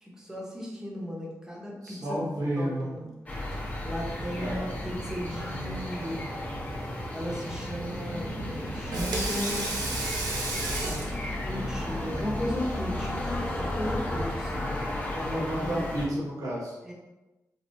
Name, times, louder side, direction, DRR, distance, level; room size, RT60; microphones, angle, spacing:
voice 1, 0.0-2.2 2.6-3.1 3.8-6.3 7.1-9.7 10.7-11.1 11.5-14.7 15.1-15.9 16.8-16.9, equal, 10° right, -3 dB, 0.8 m, -36 dB
voice 2, 1.8-2.9 4.4-4.6 15.3-16.8, right 1 dB, 60° right, -6 dB, 0.9 m, -31 dB
sound 1, 3.3-16.1, left 1 dB, 25° left, 0.7 m, -33 dB
Water tap faucet / Sink (filling or washing), 8.7-14.2, right 2 dB, 85° right, 0.6 m, -35 dB
3.3 x 2.3 x 2.7 m, 1.0 s
cardioid pair, 85°, 7 cm